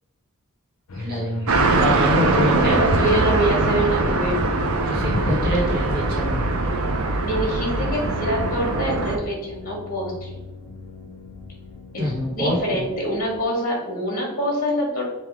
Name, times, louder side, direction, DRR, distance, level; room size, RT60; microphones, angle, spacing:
sound 1, 0.9-13.4, left 4 dB, 75° left, 0.5 m, -40 dB
voice 1, 0.9-2.9 4.8-6.5 12.0-12.8, equal, 45° right, -5 dB, 1.4 m, -25 dB
sound 2, 1.5-9.2, right 2 dB, 80° right, 0.6 m, -22 dB
voice 2, 2.3-4.4 7.2-10.4 11.9-15.1, right 1 dB, 40° left, -3 dB, 1.3 m, -25 dB
3.4 x 2.9 x 4.7 m, 1.1 s
head